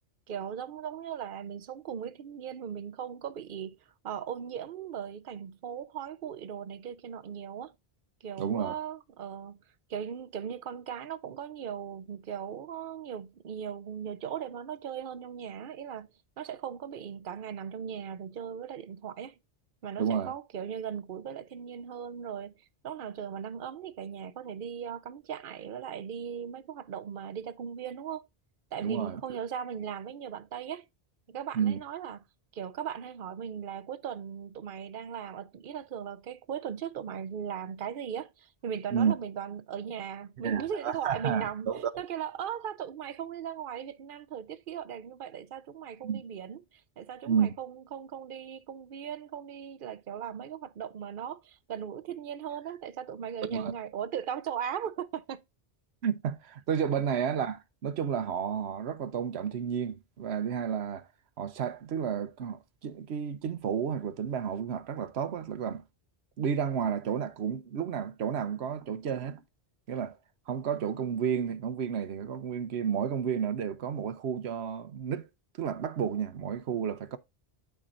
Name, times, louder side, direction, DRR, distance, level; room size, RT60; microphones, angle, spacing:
voice 1, 0.3-3.8 4.0-7.7 8.2-9.6 9.9-16.1 16.4-19.4 19.8-22.6 22.8-28.3 28.7-30.9 31.3-32.2 32.5-41.7 42.0-46.6 47.0-55.4, right 8 dB, 60° right, 0.9 m, -38 dB
voice 2, 8.4-8.8 20.0-20.3 28.8-29.2 31.5-31.8 38.9-39.1 40.4-41.9 46.0-46.2 47.3-47.5 53.4-53.7 56.0-61.1 61.4-65.8 66.4-69.4 69.9-70.2 70.5-75.3 75.6-77.2, right 7 dB, 85° right, 1.1 m, -31 dB
13.0 x 4.6 x 2.5 m
omnidirectional pair, 1.1 m